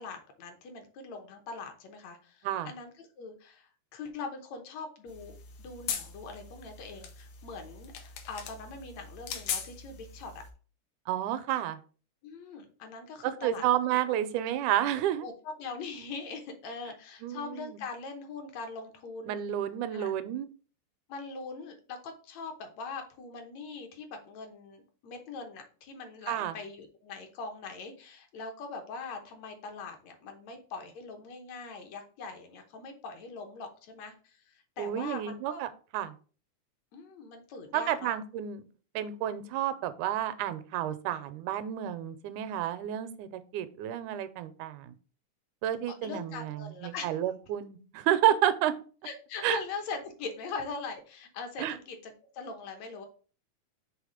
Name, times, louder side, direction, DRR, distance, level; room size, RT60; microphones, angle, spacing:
voice 1, 0.0-10.3 12.2-14.0 15.2-19.4 19.9-20.1 21.1-35.6 36.9-38.1 45.9-47.1 49.0-53.1, left 4 dB, 70° left, 5 dB, 2.1 m, -42 dB
sound 1, 5.1-10.5, left 7 dB, 90° left, 2.3 m, -40 dB
voice 2, 11.1-11.8 13.2-15.2 17.2-17.8 19.3-20.5 26.3-26.6 34.8-36.1 37.7-38.6 39.0-44.9 45.6-48.7 49.4-49.6 51.6-51.8, right 11 dB, 90° right, 12 dB, 2.0 m, -30 dB
5.8 x 3.5 x 4.9 m, 0.39 s
omnidirectional pair, 3.4 m